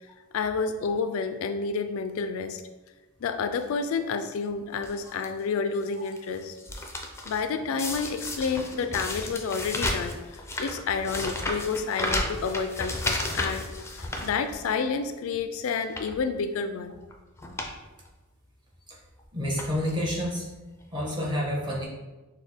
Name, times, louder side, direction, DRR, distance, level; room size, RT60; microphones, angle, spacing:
voice 1, 0.3-2.6 3.2-6.6 7.3-17.0, left 5 dB, 75° left, 9 dB, 0.3 m, -30 dB
sound 1, 4.8-5.3 5.8-6.2 6.4-7.4 7.8-14.9 15.3-15.4 15.8-16.2 17.0-17.1 17.4-17.7 18.1-18.2 19.0-19.2 19.6-20.1 20.8-20.9 21.1-21.2, left 1 dB, 15° left, 0.4 m, -33 dB
voice 2, 19.3-20.5 20.9-21.9, equal, 20° right, -4 dB, 1.1 m, -29 dB
6.2 x 2.2 x 3.4 m, 1.1 s
head